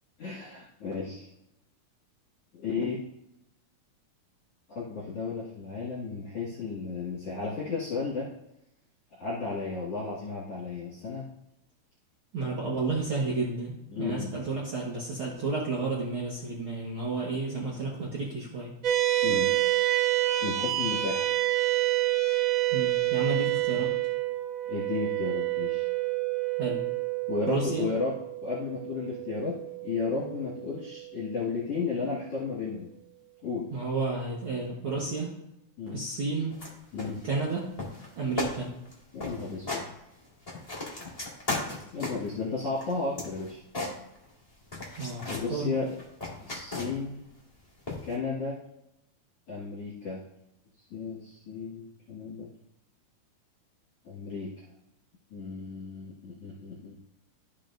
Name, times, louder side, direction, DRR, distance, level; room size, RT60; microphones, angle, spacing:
voice 1, 0.2-1.3 2.5-3.0 4.7-8.3 9.1-11.3 13.9-14.3 19.2-19.5 20.4-21.3 24.7-25.8 27.3-28.1 28.4-32.9 33.4-33.7 35.8-36.0 36.9-37.2 39.1-39.9 41.9-43.6 45.3-46.0 46.4-47.2 48.0-48.6 49.5-50.2 50.9-52.5 54.0-54.5 55.3-56.9, left 4 dB, 55° left, -7 dB, 2.5 m, -33 dB
voice 2, 12.3-18.7 22.7-23.9 26.6-26.8 27.5-27.9 33.7-35.4 35.9-36.6 37.2-37.7 38.2-38.7 45.0-45.8, right 3 dB, 55° right, -5 dB, 1.7 m, -31 dB
sound 1, 18.8-31.5, right 16 dB, 90° right, 1.1 m, -28 dB
sound 2, 36.5-36.7 37.0-37.5 37.8-38.1 38.4-38.6 38.8-38.9 39.2-39.9 40.3-42.3 42.8-44.4 44.7-45.5 45.9-47.1 47.9-48.1, left 2 dB, 15° left, 1.4 m, -36 dB
13.5 x 5.3 x 2.6 m, 0.86 s
omnidirectional pair, 3.6 m